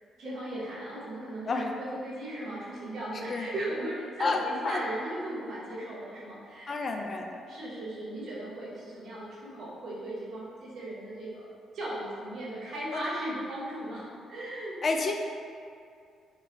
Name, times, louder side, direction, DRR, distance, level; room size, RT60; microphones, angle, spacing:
voice 1, 0.2-6.7 7.4-14.0 14.3-14.8, right 1 dB, 65° right, -8 dB, 1.0 m, -37 dB
voice 2, 6.7-7.4 12.9-13.0 14.8-15.1, left 3 dB, 40° left, 3 dB, 0.3 m, -29 dB
2.9 x 2.2 x 3.8 m, 2.3 s
cardioid pair, 90°, 0 cm